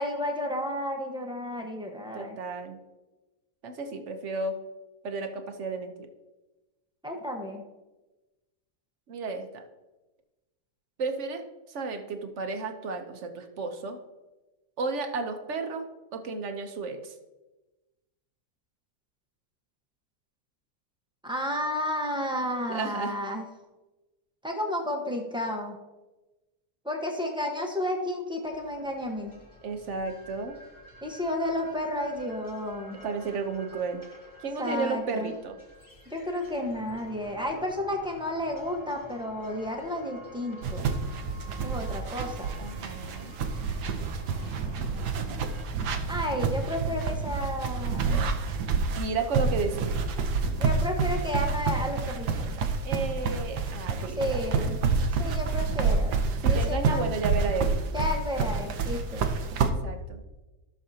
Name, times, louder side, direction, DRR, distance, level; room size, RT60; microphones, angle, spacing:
voice 1, 0.0-2.4 7.0-7.6 21.2-23.4 24.4-25.8 26.8-29.3 31.0-33.0 34.6-35.3 36.1-40.9 41.6-42.5 46.1-48.3 50.6-52.6 54.2-54.8 55.2-57.1 57.9-59.3, left 1 dB, 5° right, 1 dB, 1.0 m, -32 dB
voice 2, 2.1-2.8 3.6-4.6 5.0-6.1 9.1-9.6 11.0-14.0 14.8-15.9 16.1-17.1 22.7-23.2 29.6-30.6 33.0-34.0 34.4-35.6 42.6-43.3 48.1-48.6 49.0-50.0 52.8-54.7 56.4-57.8 59.6-60.2, right 4 dB, 55° right, 6 dB, 1.1 m, -33 dB
sound 1, 28.4-45.6, equal, 25° left, 2.4 m, -50 dB
sound 2, 40.6-59.7, right 4 dB, 90° right, 1.4 m, -28 dB
15.5 x 6.4 x 2.8 m, 1.1 s
omnidirectional pair, 1.7 m